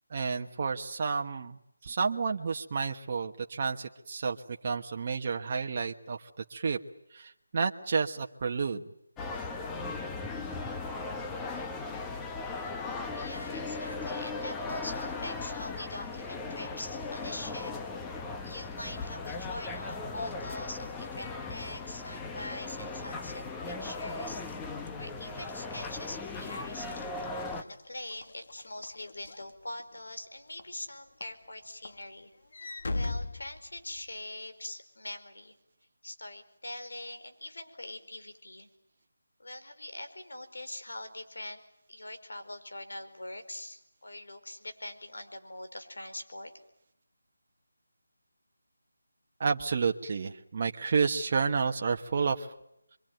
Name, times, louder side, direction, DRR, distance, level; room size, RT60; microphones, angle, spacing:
voice 1, 0.1-1.6 1.8-6.8 7.1-8.8 49.4-52.5, right 5 dB, 35° right, 3 dB, 1.3 m, -30 dB
sound 1, 9.2-27.6, left 3 dB, 10° left, 1.1 m, -38 dB
voice 2, 13.1-17.7 18.4-24.4 25.0-27.1 27.6-32.3 32.9-35.5 36.0-38.7 39.4-41.6 41.9-46.5, left 1 dB, 80° left, 8 dB, 4.8 m, -43 dB
Walk footsteps / Slam, 24.4-30.1 30.6-30.9 31.2-34.2, left 2 dB, 55° left, 1.9 m, -41 dB
27.0 x 24.0 x 9.2 m, 0.78 s
figure-of-eight pair, 165°, 0 cm